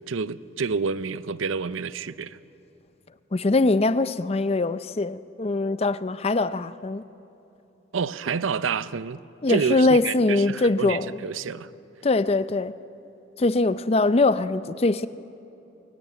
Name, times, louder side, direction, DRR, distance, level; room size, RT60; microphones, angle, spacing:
voice 1, 0.1-2.4 7.9-9.2 9.5-11.7, right 5 dB, 85° right, 0.6 m, -28 dB
voice 2, 3.3-7.0 9.4-11.1 12.0-12.7 13.4-15.1, left 2 dB, 30° left, 0.5 m, -22 dB
21.0 x 17.5 x 9.2 m
head